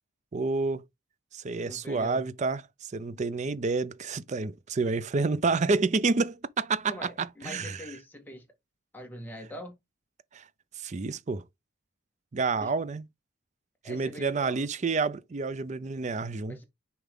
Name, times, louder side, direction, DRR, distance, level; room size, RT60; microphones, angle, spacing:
voice 1, 0.3-0.8 1.3-2.6 2.9-7.8 10.3-10.4 10.8-11.4 12.3-13.0 13.9-16.6, right 4 dB, 35° right, 0.4 m, -29 dB
voice 2, 1.6-2.3 6.8-8.4 8.9-9.7 12.6-12.7 13.8-14.6 16.5-16.6, equal, 10° left, 1.6 m, -43 dB
6.9 x 4.6 x 3.6 m
head